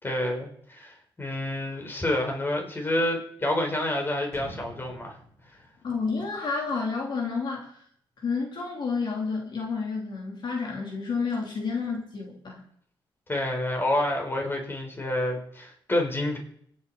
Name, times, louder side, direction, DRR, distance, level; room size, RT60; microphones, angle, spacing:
voice 1, 0.0-5.2 13.3-16.4, left 1 dB, 25° left, 2 dB, 4.1 m, -28 dB
sound 1, 4.3-7.1 7.5-7.6, left 1 dB, 10° left, 7.0 m, -47 dB
voice 2, 5.8-7.8 8.2-12.6, left 4 dB, 60° left, -1 dB, 3.3 m, -30 dB
27.0 x 9.5 x 4.2 m, 0.65 s
cardioid pair, 90°, 9 cm